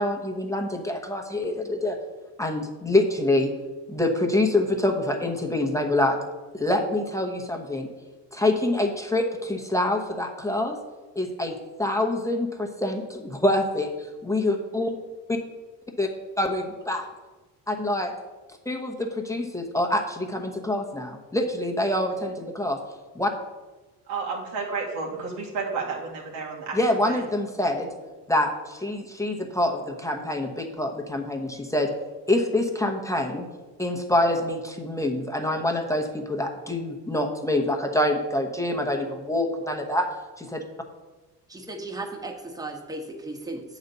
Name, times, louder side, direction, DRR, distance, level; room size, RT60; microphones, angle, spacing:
voice 1, 0.0-2.0 2.4-3.5 3.9-6.2 6.5-7.9 8.3-10.8 11.2-14.9 15.3-15.4 16.0-16.1 16.4-17.0 17.7-18.1 18.7-22.8 23.1-23.3 26.7-27.9 28.3-31.9 32.3-33.5 33.8-40.1 40.4-40.6, left 1 dB, 5° left, 1 dB, 0.9 m, -26 dB
voice 2, 24.1-26.8 27.1-27.2, right 4 dB, 90° right, -2 dB, 2.1 m, -31 dB
voice 3, 41.5-43.6, right 2 dB, 10° right, 3 dB, 1.1 m, -35 dB
7.8 x 4.1 x 6.7 m, 1.2 s
cardioid pair, 95°, 42 cm